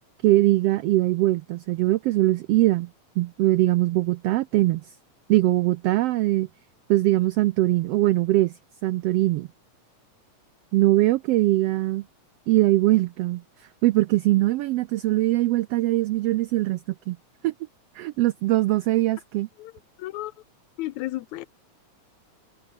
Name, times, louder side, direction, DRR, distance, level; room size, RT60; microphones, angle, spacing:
voice 1, 0.2-2.9 3.2-4.9 5.3-6.5 6.9-8.5 8.8-9.5 10.7-12.0 12.5-13.4 13.8-16.8 17.1-17.2 17.4-17.5 17.9-19.5, right 17 dB, 90° right, 1.3 m, -21 dB
voice 2, 20.0-20.3 20.8-21.5, left 16 dB, 80° left, 2.1 m, -32 dB
omnidirectional pair, 3.4 m